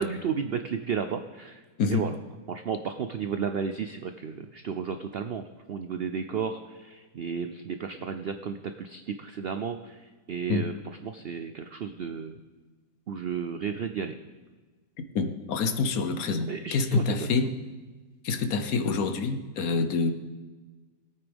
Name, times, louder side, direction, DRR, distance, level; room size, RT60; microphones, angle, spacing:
voice 1, 0.0-1.6 1.9-2.2 2.5-5.4 5.7-10.7 11.0-12.4 13.1-14.1 16.5-17.3, right 6 dB, 80° right, 8 dB, 0.5 m, -33 dB
voice 2, 15.1-17.5 18.2-20.1, left 4 dB, 65° left, 8 dB, 1.2 m, -26 dB
20.5 x 8.9 x 3.5 m, 1.3 s
omnidirectional pair, 1.7 m